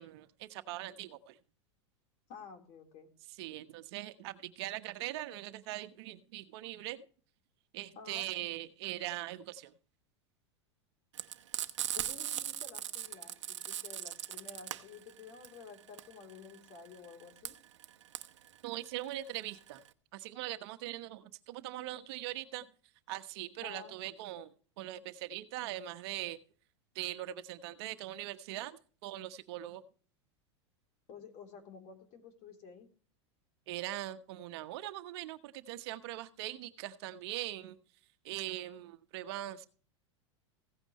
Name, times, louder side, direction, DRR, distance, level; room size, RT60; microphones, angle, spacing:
voice 1, 0.0-1.4 3.3-7.0 7.7-9.7 18.6-19.8 20.1-22.7 23.1-26.4 26.9-29.8 33.7-37.8 38.2-39.7, right 15 dB, 60° right, 9 dB, 1.2 m, -41 dB
voice 2, 2.3-3.1 8.0-8.3 12.0-17.5 23.6-23.9 31.1-32.9, left 5 dB, 50° left, 5 dB, 3.6 m, -51 dB
Frying (food), 11.1-19.9, right 11 dB, 80° right, 0.9 m, -39 dB
16.5 x 8.9 x 3.2 m, 0.40 s
hypercardioid pair, 105°, 15 cm